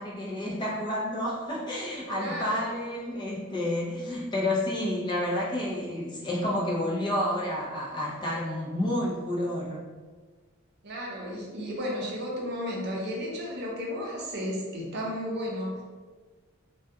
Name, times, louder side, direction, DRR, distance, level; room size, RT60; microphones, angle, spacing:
voice 1, 0.0-9.8, left 1 dB, 20° left, -4 dB, 0.4 m, -30 dB
voice 2, 2.1-2.7 10.8-15.8, equal, 55° right, -2 dB, 0.5 m, -33 dB
2.2 x 2.1 x 2.7 m, 1.4 s
head